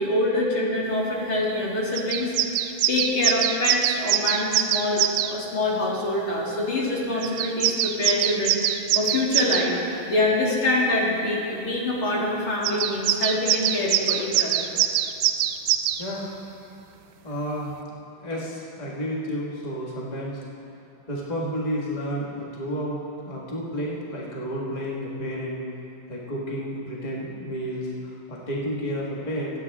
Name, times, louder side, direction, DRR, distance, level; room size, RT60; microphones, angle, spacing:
voice 1, 0.0-9.8 10.1-14.7, left 1 dB, 45° left, -4 dB, 2.2 m, -25 dB
sound 1, 1.5-1.6 2.0-5.3 7.2-9.7 12.6-16.0, right 12 dB, 90° right, 2.5 m, -23 dB
voice 2, 16.0-16.4 17.2-17.8 18.2-20.4 21.1-23.0 23.2-25.6 26.1-29.5, equal, 80° left, -4 dB, 0.3 m, -31 dB
24.5 x 9.0 x 3.7 m, 2.7 s
omnidirectional pair, 4.3 m